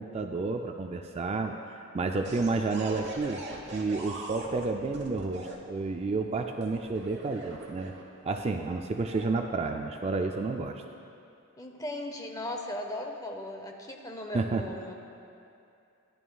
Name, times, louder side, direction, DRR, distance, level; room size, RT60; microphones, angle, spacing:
voice 1, 0.0-3.4 3.7-7.9 8.2-10.8 14.3-14.6, right 3 dB, 30° right, 4 dB, 0.3 m, -30 dB
sound 1, 2.2-5.6 6.6-8.2 8.9-9.2, right 2 dB, 55° right, 1.2 m, -42 dB
voice 2, 11.6-14.9, left 1 dB, 15° left, 3 dB, 0.7 m, -37 dB
14.0 x 11.0 x 2.3 m, 2.6 s
head